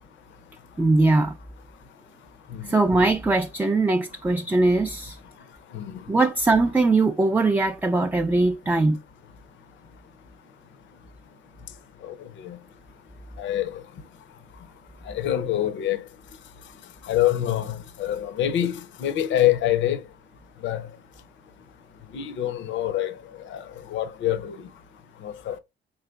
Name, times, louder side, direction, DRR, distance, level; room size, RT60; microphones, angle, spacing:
voice 1, 0.8-1.3 2.6-5.2 6.1-9.0, right 2 dB, 10° right, 0.3 m, -21 dB
voice 2, 13.4-13.8 15.1-16.0 17.1-20.0 20.6-20.8 22.1-23.1 23.5-23.6 23.9-24.6 25.2-25.6, left 12 dB, 70° left, 0.5 m, -25 dB
4.1 x 3.9 x 2.2 m
cardioid pair, 90°, 20 cm